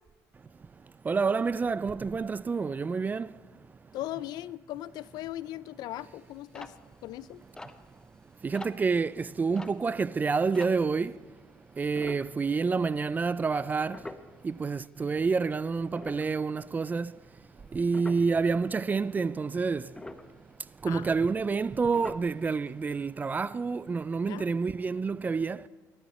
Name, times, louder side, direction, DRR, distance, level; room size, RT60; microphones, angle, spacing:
voice 1, 1.1-3.3 8.4-11.1 11.8-14.0 14.4-17.1 17.7-19.9 20.8-25.6, right 4 dB, 25° right, 0.4 m, -28 dB
voice 2, 3.9-6.7 7.0-7.4 20.8-21.2 24.3-24.4, left 14 dB, 65° left, 0.4 m, -38 dB
sound 1, 6.0-11.2 11.9-12.9 13.2-13.4 13.9-15.2 15.6-18.5 18.8-19.3 19.7-21.7 21.9-22.7 23.1-23.2 23.4-23.6 24.0-24.1, left 2 dB, 10° left, 0.8 m, -46 dB
19.5 x 12.0 x 4.2 m
cardioid pair, 100°, 7 cm